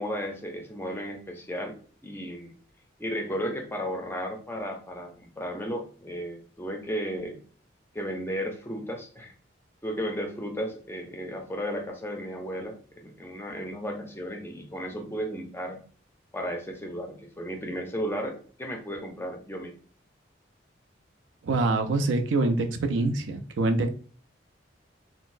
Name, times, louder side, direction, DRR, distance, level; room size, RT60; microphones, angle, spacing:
voice 1, 0.0-1.8 2.0-2.5 3.0-7.4 7.9-9.3 9.8-15.8 16.3-19.7, equal, 10° left, 3 dB, 0.4 m, -34 dB
voice 2, 21.4-23.9, right 2 dB, 80° right, 8 dB, 0.4 m, -25 dB
3.9 x 2.0 x 2.4 m, 0.41 s
head